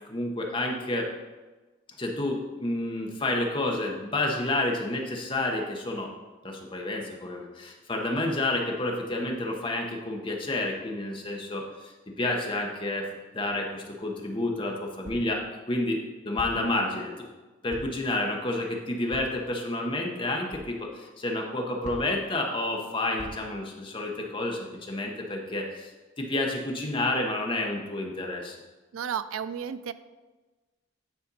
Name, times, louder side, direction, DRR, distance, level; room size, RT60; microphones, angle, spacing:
voice 1, 0.1-1.1 2.0-6.1 6.4-13.1 13.3-17.3 17.6-28.6, left 2 dB, 25° left, 1 dB, 0.9 m, -30 dB
sound 1, 15.0-15.4 16.4-16.8 17.7-18.1 19.1-19.4 20.5-20.7 21.8-22.3 23.2-23.6, right 1 dB, 35° right, 1.1 m, -43 dB
voice 2, 28.9-29.9, right 8 dB, 90° right, 14 dB, 0.4 m, -32 dB
9.5 x 4.2 x 4.0 m, 1.2 s
head